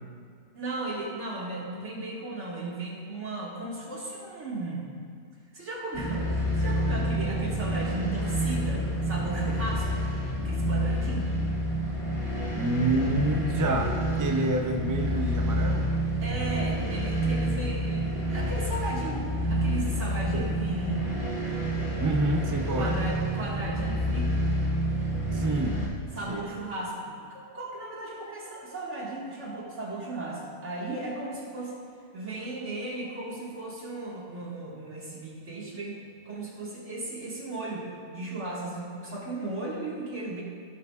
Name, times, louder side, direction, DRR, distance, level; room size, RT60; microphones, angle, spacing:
voice 1, 0.5-4.8 5.5-10.0 10.4-11.4 16.2-21.1 22.7-24.5 26.1-31.8 32.1-37.9 38.1-40.4, right 2 dB, 70° right, -5 dB, 2.1 m, -35 dB
sound 1, 5.9-25.9, right 1 dB, 55° left, 1.6 m, -28 dB
voice 2, 12.5-16.0 20.3-20.6 22.0-23.0 25.3-25.8 26.3-26.5, right 1 dB, 30° right, 3 dB, 0.4 m, -28 dB
16.5 x 6.7 x 2.4 m, 2.3 s
omnidirectional pair, 1.3 m